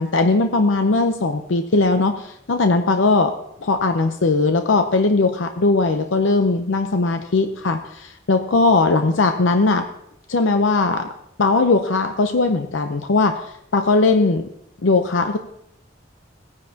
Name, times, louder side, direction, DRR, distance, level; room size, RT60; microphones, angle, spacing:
voice 1, 0.0-3.3 3.6-9.9 10.3-11.1 11.4-13.4 13.7-14.5 14.8-15.4, left 3 dB, 85° left, 7 dB, 0.7 m, -19 dB
17.5 x 9.7 x 2.8 m, 0.75 s
head